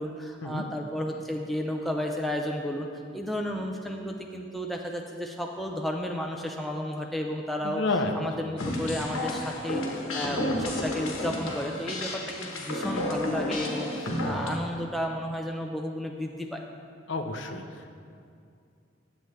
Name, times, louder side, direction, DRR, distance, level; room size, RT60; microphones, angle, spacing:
voice 1, 0.0-2.9 3.1-7.8 8.1-16.6, equal, ahead, 1 dB, 0.4 m, -33 dB
voice 2, 7.6-8.2 17.1-17.9, left 3 dB, 65° left, 5 dB, 0.6 m, -30 dB
sound 1, 8.6-14.6, left 1 dB, 90° left, 1.1 m, -31 dB
10.0 x 7.8 x 3.2 m, 2.4 s
head